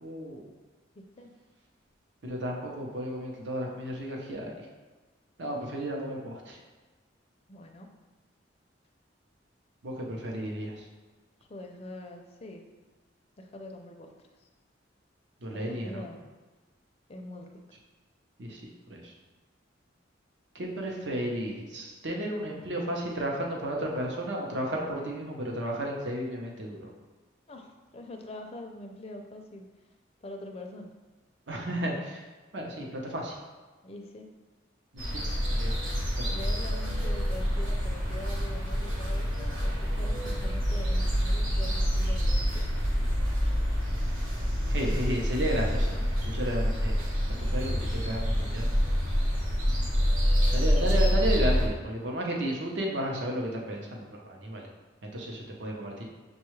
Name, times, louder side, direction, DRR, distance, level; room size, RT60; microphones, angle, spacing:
voice 1, 0.0-0.4 2.2-4.5 5.4-6.6 9.8-10.8 15.4-16.1 18.4-18.6 18.9-19.1 20.5-26.9 31.5-32.2 32.5-33.4 34.9-35.7 36.2-36.4 44.7-46.9 47.5-48.7 50.5-54.7 55.0-56.0, right 1 dB, 65° right, -1 dB, 0.7 m, -33 dB
voice 2, 7.5-7.9 11.5-12.6 13.4-14.1 14.4-14.5 15.5-16.2 17.1-17.5 27.5-29.7 30.2-30.9 33.8-34.2 36.3-42.7, left 1 dB, 30° left, 3 dB, 0.4 m, -44 dB
sound 1, 35.0-51.7, equal, 90° right, 1.0 m, -27 dB
6.3 x 2.3 x 3.1 m, 1.3 s
head